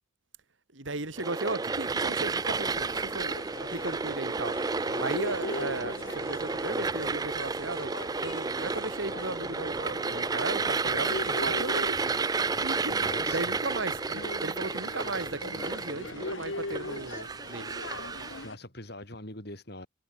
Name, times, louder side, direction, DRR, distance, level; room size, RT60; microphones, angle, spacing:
voice 1, 0.7-3.3 3.7-4.6 5.0-12.1 12.6-13.0 13.3-17.7, right 2 dB, 70° right, 2.8 m, -36 dB
sound 1, 1.2-18.5, right 4 dB, 20° right, 0.3 m, -31 dB
sound 2, 2.5-18.6, left 2 dB, 75° left, 2.3 m, -41 dB
voice 2, 12.9-13.5 18.4-19.9, left 1 dB, 50° left, 8.0 m, -42 dB
head